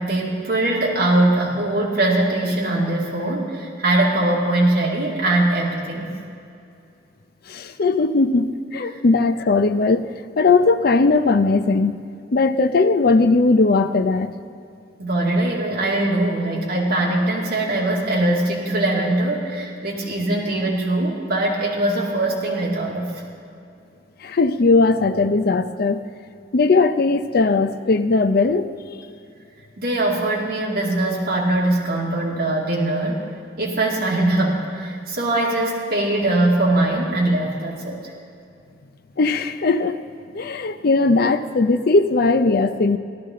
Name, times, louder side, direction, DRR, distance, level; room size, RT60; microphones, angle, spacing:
voice 1, 0.0-6.1 8.9-9.0 15.0-23.2 29.8-33.3 33.6-38.0, right 2 dB, 55° right, -5 dB, 2.3 m, -21 dB
voice 2, 7.5-10.1 10.4-11.9 12.3-14.3 24.2-26.0 26.5-28.7 39.2-40.0 40.3-43.0, left 3 dB, 55° left, 9 dB, 0.6 m, -18 dB
17.5 x 12.0 x 3.7 m, 2.5 s
head